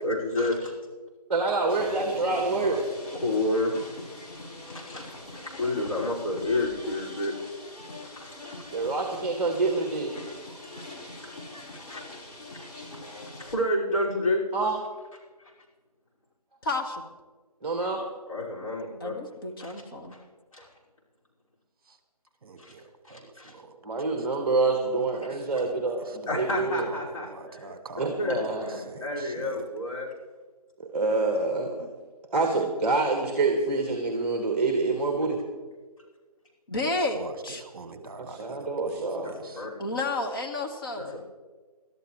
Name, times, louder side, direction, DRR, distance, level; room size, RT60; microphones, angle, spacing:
voice 1, 0.0-0.7 3.2-3.7 4.7-5.0 5.3-7.3 8.2-8.4 11.7-12.0 13.5-14.4 18.3-19.1 19.6-19.7 20.5-20.7 22.6-22.7 23.1-23.5 26.3-27.7 28.2-30.1 39.2-39.8 41.0-41.2, left 1 dB, 55° left, -5 dB, 5.7 m, -30 dB
voice 2, 1.3-2.8 8.7-10.1 14.5-14.8 17.6-18.0 23.8-26.9 28.0-28.6 30.8-31.9 32.3-35.4 38.4-39.3, right 3 dB, 20° right, 3 dB, 1.6 m, -26 dB
sound 1, 1.7-13.6, left 2 dB, 75° left, 5.0 m, -43 dB
voice 3, 1.8-2.8 21.9-22.0 22.4-24.6 24.8-26.5 26.9-28.1 28.5-29.6 37.1-39.7, right 3 dB, 35° right, 6 dB, 2.0 m, -45 dB
voice 4, 16.6-17.0 19.0-20.2 36.7-37.6 39.8-41.1, left 2 dB, 35° left, 3 dB, 1.7 m, -31 dB
23.0 x 13.0 x 3.3 m, 1.3 s
figure-of-eight pair, 160°, 20 cm